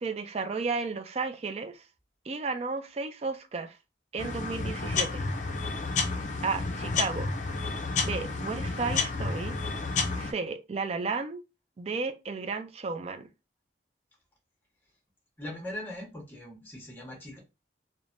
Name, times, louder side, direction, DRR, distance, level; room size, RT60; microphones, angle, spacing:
voice 1, 0.0-1.8 2.3-3.8 4.1-5.2 6.4-7.3 8.0-9.6 10.2-11.4 11.8-13.3, right 4 dB, 35° right, 0.3 m, -33 dB
sound 1, 4.2-10.3, left 4 dB, 40° left, 0.5 m, -31 dB
voice 2, 15.4-17.4, left 1 dB, 10° left, 1.0 m, -40 dB
3.2 x 2.1 x 2.5 m
head